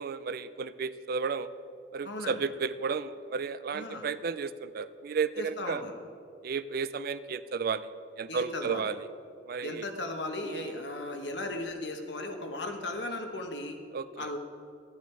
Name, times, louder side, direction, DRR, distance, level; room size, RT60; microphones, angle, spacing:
voice 1, 0.0-1.5 1.9-5.8 6.4-9.0 9.5-9.9 10.4-10.7 13.9-14.3, right 5 dB, 55° right, 15 dB, 0.4 m, -33 dB
voice 2, 2.0-2.4 3.7-4.1 5.4-5.9 8.3-8.9 9.6-13.8 14.2-14.4, left 2 dB, 70° left, 4 dB, 1.3 m, -36 dB
13.5 x 9.4 x 4.6 m, 2.4 s
head